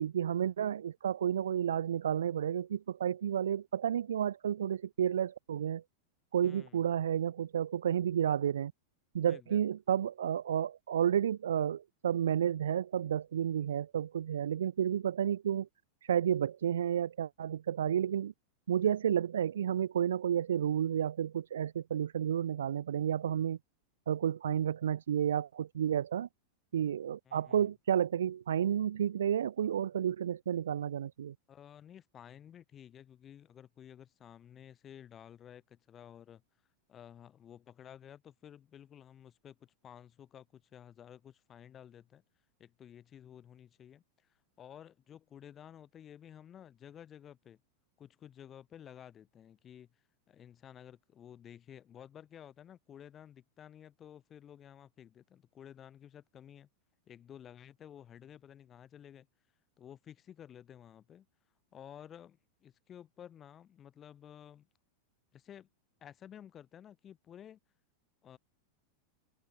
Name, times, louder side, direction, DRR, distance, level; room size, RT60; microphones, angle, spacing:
voice 1, 0.0-5.8 6.3-8.7 9.1-15.7 16.0-18.3 18.7-23.6 24.1-26.3 26.7-31.3, right 9 dB, 75° right, 0.5 m, -31 dB
voice 2, 6.4-6.8 9.3-9.6 27.3-27.7 31.5-36.4 36.9-42.2 42.6-47.6 48.0-49.9 50.3-56.7 57.1-59.3 59.8-61.3 61.7-64.7 65.3-65.7 66.0-67.6 68.2-68.4, left 9 dB, 30° left, 3.0 m, -53 dB
figure-of-eight pair, 90°, 0 cm